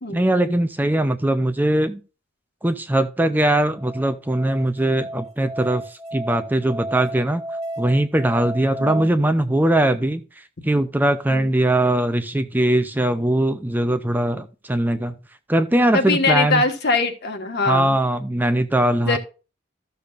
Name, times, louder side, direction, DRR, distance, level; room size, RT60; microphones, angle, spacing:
voice 1, 0.1-2.0 2.6-7.4 7.8-15.2 15.5-16.6 17.7-19.2, right 1 dB, 10° right, 9 dB, 0.5 m, -21 dB
Musical instrument, 3.8-9.0, right 1 dB, 35° right, 1.4 m, -33 dB
voice 2, 15.9-18.0 19.1-19.2, left 3 dB, 55° left, 5 dB, 1.5 m, -22 dB
13.5 x 6.7 x 2.5 m, 0.32 s
head